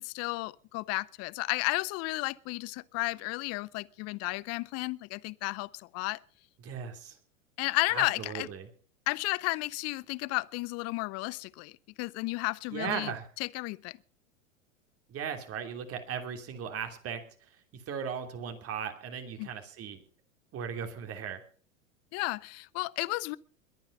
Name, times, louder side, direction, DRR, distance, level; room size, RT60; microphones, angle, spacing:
voice 1, 0.0-6.2 7.6-8.5 9.1-11.7 12.0-13.1 13.4-14.0 19.4-19.5 22.1-23.4, left 23 dB, 40° left, 0.7 m, -33 dB
voice 2, 6.6-7.2 7.9-8.7 12.7-13.3 15.1-17.2 17.5-20.0 20.5-21.4, right 7 dB, 35° right, 3.0 m, -37 dB
22.0 x 9.0 x 5.4 m
hypercardioid pair, 95°, 39 cm